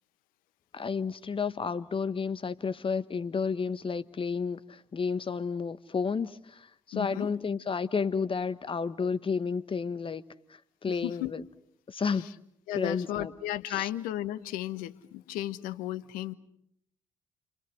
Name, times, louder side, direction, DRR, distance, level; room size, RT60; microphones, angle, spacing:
voice 1, 0.7-10.2 10.5-11.4 11.9-12.3 12.8-13.3 13.7-13.9, left 5 dB, 35° left, 1.4 m, -31 dB
voice 2, 6.9-7.3 10.9-11.3 12.2-12.3 12.7-16.3, left 14 dB, 65° left, 1.1 m, -34 dB
30.0 x 27.0 x 6.3 m
figure-of-eight pair, 40°, 15 cm